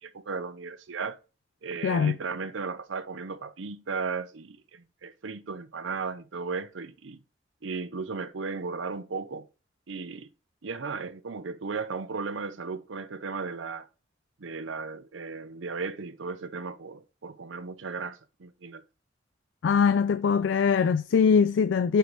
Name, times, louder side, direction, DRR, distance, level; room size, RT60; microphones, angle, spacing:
voice 1, 0.0-1.2 1.6-7.2 7.6-9.5 9.9-10.3 10.6-13.9 14.4-18.8, right 4 dB, 75° right, 0.6 m, -35 dB
voice 2, 1.8-2.2 19.6-22.0, left 6 dB, 70° left, 0.3 m, -22 dB
9.3 x 3.4 x 4.0 m
head